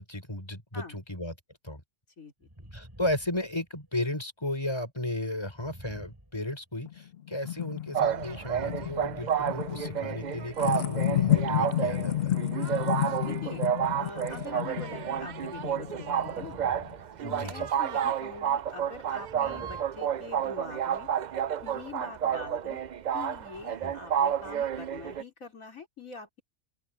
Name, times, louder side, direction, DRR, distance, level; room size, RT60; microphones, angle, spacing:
voice 1, 0.0-1.3 1.6-1.8 2.7-12.3 17.2-17.7 23.8-23.9, left 1 dB, 20° left, 6.1 m, -34 dB
sound 1, 2.4-4.0 5.5-7.0 7.9-10.0 10.7-12.3 13.4-14.2 16.2-17.1 17.4-17.7 19.1-20.7, equal, 15° right, 4.8 m, -51 dB
sound 2, 6.9-16.9, left 13 dB, 55° left, 0.8 m, -31 dB
sound 3, 7.9-25.2, right 9 dB, 75° right, 0.4 m, -30 dB
voice 2, 13.1-13.6 14.0-16.6 17.2-21.1 21.6-22.8 23.1-26.4, left 4 dB, 80° left, 4.5 m, -44 dB
open air
omnidirectional pair, 1.4 m